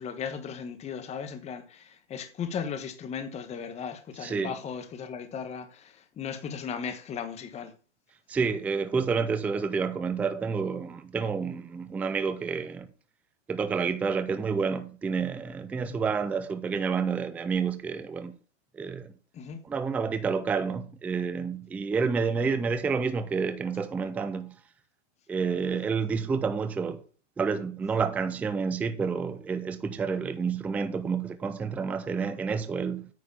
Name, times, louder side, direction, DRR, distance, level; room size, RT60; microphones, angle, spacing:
voice 1, 0.0-7.7 15.9-16.0 19.3-19.6, left 7 dB, 20° left, 1.2 m, -36 dB
voice 2, 4.2-4.5 8.3-12.9 13.5-18.3 18.7-19.1 19.6-24.5 25.3-27.0 27.4-33.1, right 5 dB, 5° right, 0.4 m, -29 dB
9.4 x 4.9 x 6.9 m
hypercardioid pair, 140°, 36 cm